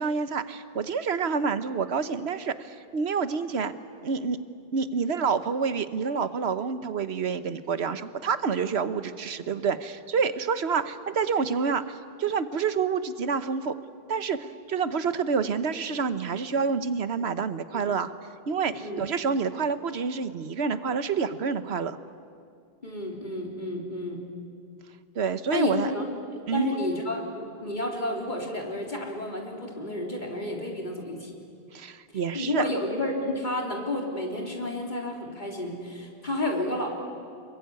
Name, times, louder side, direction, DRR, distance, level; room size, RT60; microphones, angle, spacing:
voice 1, 0.0-3.7 4.0-4.4 4.7-13.7 14.1-18.1 18.5-22.0 25.1-25.9 26.5-26.7 31.7-32.6, right 5 dB, 85° right, 12 dB, 1.3 m, -28 dB
voice 2, 18.7-19.0 19.3-19.4 22.8-24.2 25.5-26.0 26.3-31.3 32.3-36.9, left 1 dB, 50° left, 0 dB, 3.8 m, -31 dB
27.0 x 22.0 x 9.5 m, 2.3 s
omnidirectional pair, 1.0 m